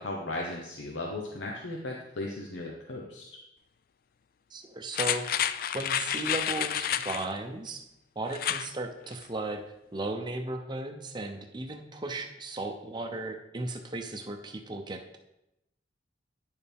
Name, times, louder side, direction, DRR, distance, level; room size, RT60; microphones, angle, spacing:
voice 1, 0.0-3.3, left 2 dB, 75° left, -1 dB, 1.0 m, -36 dB
voice 2, 4.5-5.2 5.7-7.8 8.2-9.6 9.9-15.2, right 2 dB, 25° right, 3 dB, 0.7 m, -36 dB
sound 1, 4.9-7.3 8.3-8.7 9.1-9.2, left 10 dB, 50° left, 0.3 m, -30 dB
9.7 x 6.8 x 3.5 m, 0.86 s
head